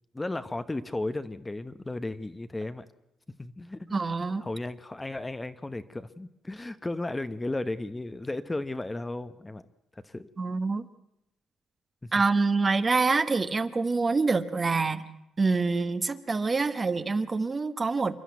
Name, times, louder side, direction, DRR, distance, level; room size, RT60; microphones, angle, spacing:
voice 1, 0.1-2.8 3.4-4.0 4.4-9.6 9.9-10.3 12.0-12.1, left 2 dB, 15° left, 11 dB, 0.9 m, -34 dB
voice 2, 3.9-4.4 10.4-10.9 12.1-15.1 15.4-18.2, right 4 dB, 30° right, 11 dB, 1.2 m, -26 dB
28.0 x 11.0 x 9.5 m, 0.87 s
cardioid pair, 90°, 0 cm